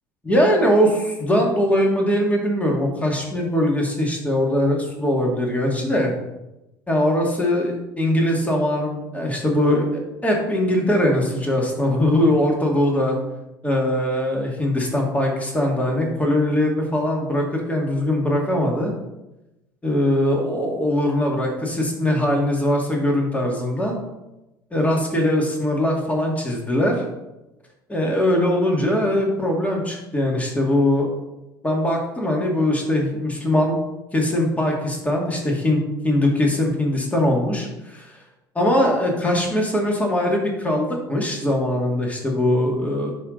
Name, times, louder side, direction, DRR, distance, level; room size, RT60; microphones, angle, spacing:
voice 1, 0.2-6.1 6.9-13.2 13.6-18.9 19.8-24.0 24.7-27.0 27.9-31.1 31.6-33.8 34.1-38.2 38.5-43.1, left 1 dB, 10° left, 0 dB, 2.3 m, -21 dB
10.5 x 3.6 x 4.0 m, 0.98 s
hypercardioid pair, 65°, 12 cm